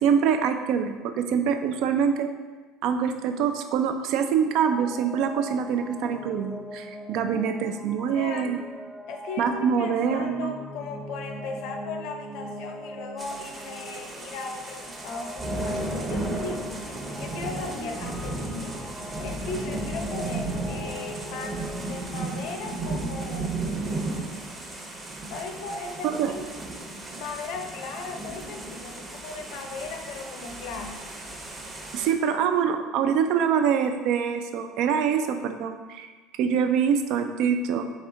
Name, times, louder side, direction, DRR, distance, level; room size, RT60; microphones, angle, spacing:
voice 1, 0.0-2.3 2.8-8.6 9.4-10.5 26.0-26.3 31.9-37.9, right 7 dB, 65° right, 7 dB, 0.4 m, -25 dB
sound 1, 4.6-22.4, equal, 5° left, 0.4 m, -41 dB
voice 2, 8.1-8.5 9.1-16.6 17.1-18.9 19.2-23.7 25.3-26.4 27.1-31.0, left 4 dB, 65° left, 4 dB, 0.6 m, -37 dB
sound 2, 13.2-32.1, right 2 dB, 30° right, 0.9 m, -34 dB
4.2 x 3.4 x 3.7 m, 1.3 s
hypercardioid pair, 85°, 0 cm